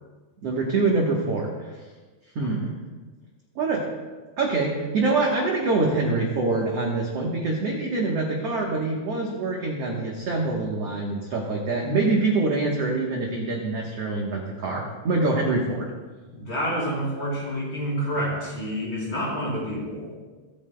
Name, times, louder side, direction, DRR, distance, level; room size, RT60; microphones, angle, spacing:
voice 1, 0.4-1.7 2.4-2.7 3.6-3.9 4.4-15.9, right 3 dB, 60° right, -2 dB, 1.7 m, -25 dB
voice 2, 16.3-20.1, equal, 30° left, -5 dB, 3.9 m, -28 dB
24.5 x 9.0 x 2.3 m, 1.3 s
omnidirectional pair, 4.4 m